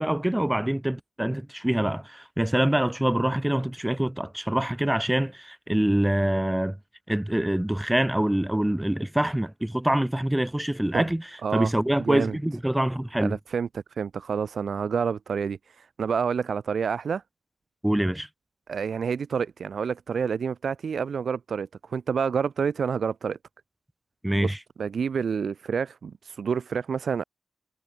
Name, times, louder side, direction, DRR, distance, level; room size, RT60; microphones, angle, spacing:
voice 1, 0.0-6.8 7.1-13.4 17.8-18.3 24.2-24.6, right 1 dB, 10° right, 2.1 m, -25 dB
voice 2, 11.4-11.7 12.0-12.4 13.2-17.2 18.7-23.4 24.3-27.2, right 6 dB, 75° right, 1.4 m, -28 dB
wide cardioid pair, 115°, 0 cm